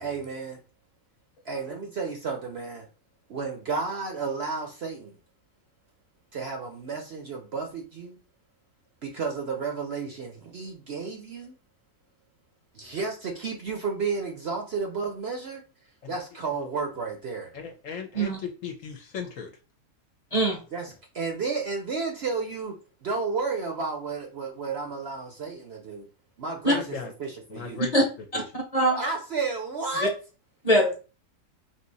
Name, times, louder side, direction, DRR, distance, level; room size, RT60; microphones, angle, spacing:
voice 1, 0.0-0.6 1.4-2.9 3.3-5.2 6.3-8.2 9.0-11.5 12.7-15.6 16.1-17.5 20.7-22.7 23.0-26.1 26.4-27.8 28.8-30.1, right 4 dB, 55° right, 0.8 m, -32 dB
voice 2, 17.5-19.5 26.7-27.1 27.5-27.9 28.3-28.4, left 6 dB, 65° left, 1.0 m, -37 dB
voice 3, 28.3-29.0 30.0-30.1 30.6-31.0, equal, 30° left, 0.9 m, -22 dB
3.6 x 2.8 x 4.0 m
omnidirectional pair, 1.6 m